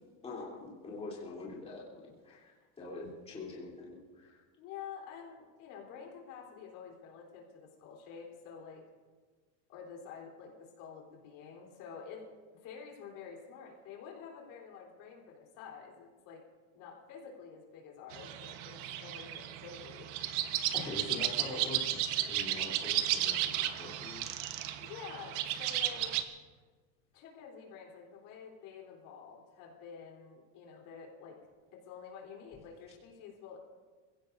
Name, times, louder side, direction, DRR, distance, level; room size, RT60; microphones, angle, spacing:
voice 1, 0.2-4.4 20.7-24.4, left 3 dB, 15° left, -5 dB, 3.3 m, -44 dB
voice 2, 4.6-8.8 9.7-16.4 16.7-20.1 24.8-26.1 27.1-31.4 31.7-33.6, left 6 dB, 55° left, -1 dB, 3.7 m, -49 dB
sound 1, 18.1-26.2, right 12 dB, 70° right, 1.2 m, -34 dB
27.5 x 16.5 x 2.7 m, 1.4 s
cardioid pair, 170°, 37 cm